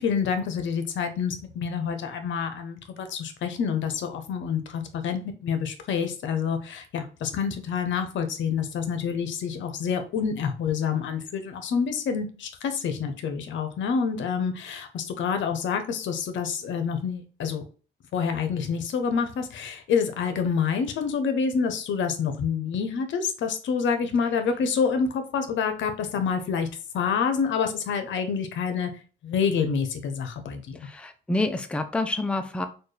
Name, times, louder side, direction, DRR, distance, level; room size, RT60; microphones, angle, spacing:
voice 1, 0.0-17.6 18.1-26.7 26.9-28.9 29.2-30.8, left 6 dB, 70° left, 7 dB, 0.7 m, -27 dB
voice 2, 30.7-32.7, left 2 dB, 5° left, 8 dB, 0.4 m, -28 dB
4.2 x 2.3 x 3.2 m, 0.37 s
cardioid pair, 90°, 20 cm